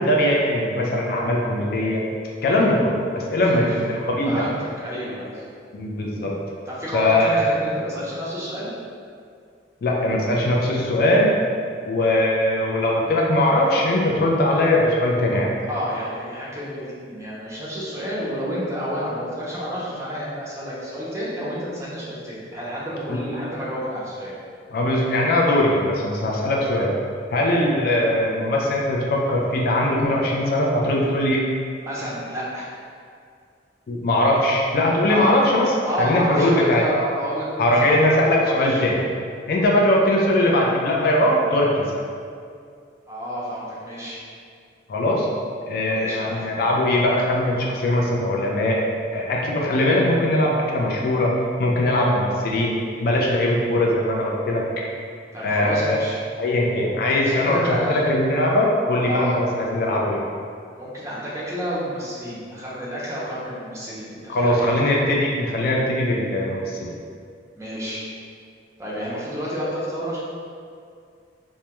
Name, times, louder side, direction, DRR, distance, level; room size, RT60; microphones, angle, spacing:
voice 1, 0.0-2.0 2.4-2.9 3.3-4.4 5.7-6.3 6.9-7.5 9.8-11.3 11.8-15.5 23.1-23.2 24.7-26.9 27.3-31.5 33.9-35.7 36.0-36.8 37.6-39.0 39.5-41.7 44.9-45.3 45.6-48.8 49.1-51.3 51.6-52.7 53.0-54.6 55.4-56.0 56.4-60.2 64.3-66.8, left 1 dB, 55° left, -2 dB, 0.3 m, -20 dB
voice 2, 4.3-5.5 6.7-8.7 15.7-24.3 31.8-32.7 35.1-35.4 35.9-38.2 38.4-38.8 43.1-44.2 45.9-46.5 55.3-56.2 57.2-58.0 59.1-59.4 60.8-64.7 67.6-68.0 68.8-70.2, equal, 15° right, -7 dB, 0.5 m, -30 dB
2.2 x 2.1 x 2.9 m, 2.2 s
head